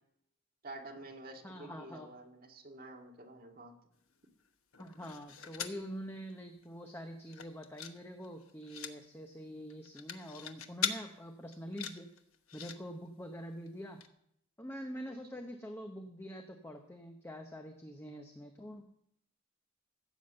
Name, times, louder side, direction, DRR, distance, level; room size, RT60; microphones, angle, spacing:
voice 1, 0.6-3.7, right 2 dB, 45° right, 1 dB, 2.0 m, -49 dB
voice 2, 1.4-2.1 4.8-12.1 12.5-14.0 14.6-18.8, equal, 10° left, 4 dB, 0.8 m, -45 dB
sound 1, 4.7-5.8 6.3-6.4 6.6-6.9 7.3-8.0 8.2-8.9 9.7-11.0 11.5-12.8 13.7-13.8 14.0-14.1, left 8 dB, 85° left, 1.1 m, -40 dB
15.0 x 7.2 x 7.9 m, 0.75 s
head